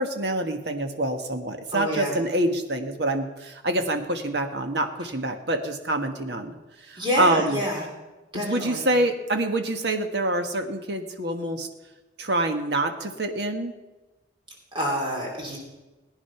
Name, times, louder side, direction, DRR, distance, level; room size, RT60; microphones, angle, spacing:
voice 1, 0.0-6.5 6.9-7.6 8.3-11.7 12.2-13.7, right 1 dB, 60° right, 6 dB, 1.5 m, -26 dB
voice 2, 1.7-2.1 7.0-7.9 8.3-8.8 14.7-15.6, equal, 25° right, -2 dB, 3.1 m, -28 dB
18.5 x 9.9 x 5.8 m, 1.1 s
head